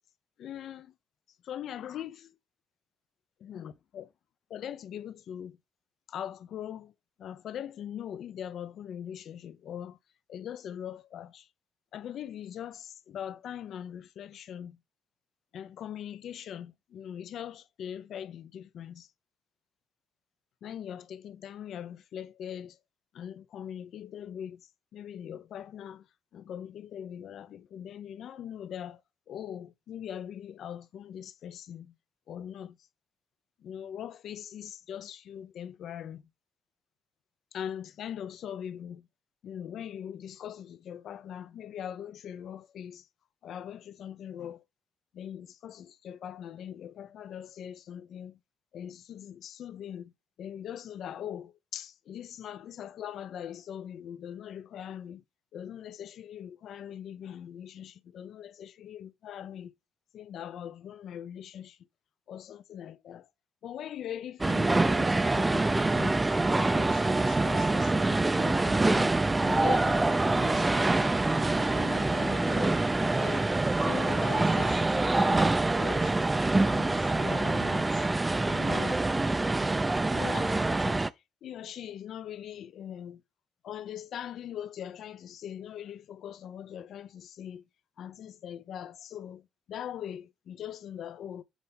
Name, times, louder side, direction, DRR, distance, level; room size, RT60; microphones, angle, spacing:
voice 1, 0.4-0.9 1.4-2.3 3.4-4.1 4.5-5.6 6.1-6.9 7.2-10.0 10.3-11.5 11.9-14.8 15.5-19.1 20.6-22.8 23.1-24.6 24.9-26.1 26.3-29.0 29.3-31.9 32.3-32.8 33.6-36.2 37.5-39.1 39.4-43.0 43.4-44.6 45.1-48.4 48.7-50.1 50.4-55.2 55.5-59.7 60.1-61.8 62.3-63.3 63.6-66.2 66.5-71.2 71.6-73.5 73.8-75.5 75.8-76.4 76.7-78.1 78.4-79.1 80.1-81.0 81.4-83.2 83.6-87.6 88.0-91.4, left 9 dB, 70° left, 0.8 m, -41 dB
sound 1, 64.4-81.1, right 2 dB, 20° right, 0.5 m, -25 dB
8.3 x 4.1 x 3.6 m
cardioid pair, 90°, 0 cm